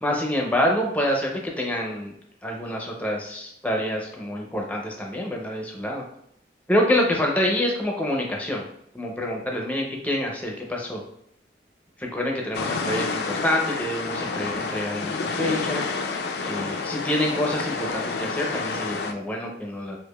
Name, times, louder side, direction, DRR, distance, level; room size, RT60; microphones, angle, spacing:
voice 1, 0.0-2.1 2.4-6.0 6.7-8.6 8.9-11.0 12.0-15.9 16.4-20.0, left 1 dB, 10° left, 0 dB, 0.5 m, -26 dB
sound 1, 12.5-19.1, left 4 dB, 65° left, 0.3 m, -29 dB
4.7 x 2.4 x 2.2 m, 0.73 s
head